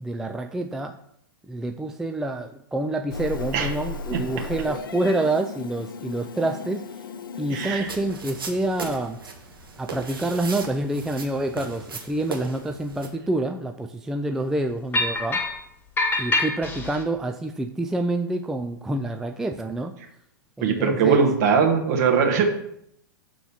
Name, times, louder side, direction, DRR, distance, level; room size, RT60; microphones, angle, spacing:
voice 1, 0.0-1.0 1.5-7.1 7.4-9.2 9.8-15.4 16.2-19.9 20.6-21.3, right 2 dB, 5° right, 5 dB, 0.3 m, -27 dB
Meow, 3.1-7.8, left 4 dB, 70° left, 0.7 m, -35 dB
voice 2, 7.5-7.9 20.6-22.4, right 6 dB, 50° right, 3 dB, 1.5 m, -20 dB
sound 1, 7.6-13.1, right 4 dB, 85° right, 1.2 m, -37 dB
sound 2, 14.9-15.6 16.0-17.0, left 2 dB, 15° left, 1.3 m, -25 dB
6.9 x 3.7 x 5.5 m, 0.73 s
figure-of-eight pair, 105°, 12 cm